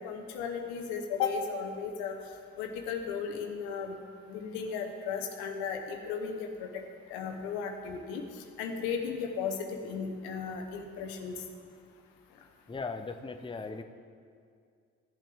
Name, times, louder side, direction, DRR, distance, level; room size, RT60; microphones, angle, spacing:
voice 1, 0.0-2.2 2.6-4.0 4.3-6.7 7.1-8.2 8.6-11.4, left 6 dB, 85° left, 4 dB, 1.0 m, -35 dB
voice 2, 12.7-13.8, left 4 dB, 15° left, 7 dB, 0.7 m, -38 dB
15.5 x 7.5 x 3.4 m, 2.2 s
hypercardioid pair, 50°, 37 cm